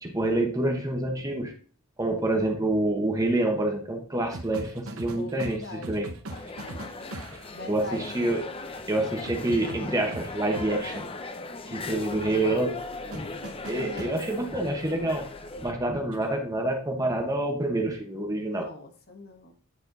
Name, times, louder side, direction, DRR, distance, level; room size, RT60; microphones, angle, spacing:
voice 1, 0.0-1.5 2.0-6.1 7.7-8.4 8.9-11.0 11.7-12.8 13.1-13.3 13.7-15.3 15.6-18.7, right 1 dB, 15° right, 3 dB, 1.2 m, -27 dB
sound 1, 4.3-7.6 9.2-10.7 13.1-14.1 16.1-16.3, right 2 dB, 75° right, 1.0 m, -40 dB
voice 2, 5.1-5.9 7.5-8.2 13.7-14.2 18.4-19.5, left 2 dB, 45° left, 3 dB, 1.2 m, -40 dB
sound 2, 6.3-15.7, left 3 dB, 25° left, 0.6 m, -39 dB
9.5 x 4.4 x 4.0 m, 0.40 s
head